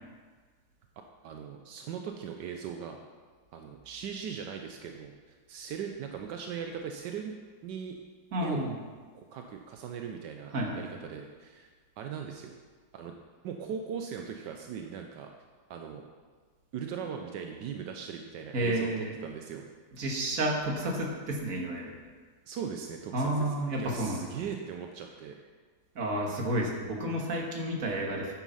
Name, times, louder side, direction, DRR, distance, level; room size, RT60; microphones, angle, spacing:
voice 1, 1.2-3.0 3.5-7.4 7.6-7.9 8.4-8.7 9.1-11.7 12.0-12.5 12.9-13.1 13.4-15.3 15.7-16.0 16.7-18.9 19.2-19.6 22.5-25.4, right 7 dB, 80° right, 3 dB, 1.3 m, -39 dB
voice 2, 8.3-8.7 10.5-10.8 18.5-19.1 20.0-22.0 23.1-24.2 26.0-28.3, right 1 dB, 55° right, 0 dB, 1.9 m, -31 dB
9.6 x 7.3 x 5.6 m, 1.5 s
omnidirectional pair, 1.8 m